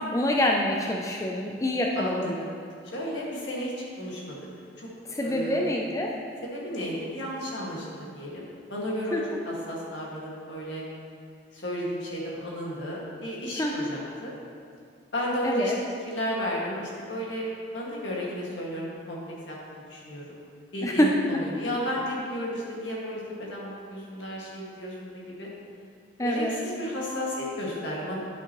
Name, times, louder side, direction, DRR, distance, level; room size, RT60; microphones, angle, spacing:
voice 1, 0.0-2.3 5.2-6.1 9.1-9.2 13.6-13.9 15.4-15.8 20.8-21.1 26.2-26.5, left 1 dB, 15° left, 0 dB, 0.4 m, -26 dB
voice 2, 2.0-2.5 2.8-3.7 4.0-4.4 4.8-4.9 5.2-5.7 6.5-9.2 9.4-10.8 11.5-14.3 15.1-15.7 16.0-17.5 17.7-19.2 19.5-20.3 20.7-25.5 26.2-28.2, equal, 80° left, -5 dB, 1.9 m, -33 dB
11.0 x 6.1 x 3.0 m, 2.2 s
head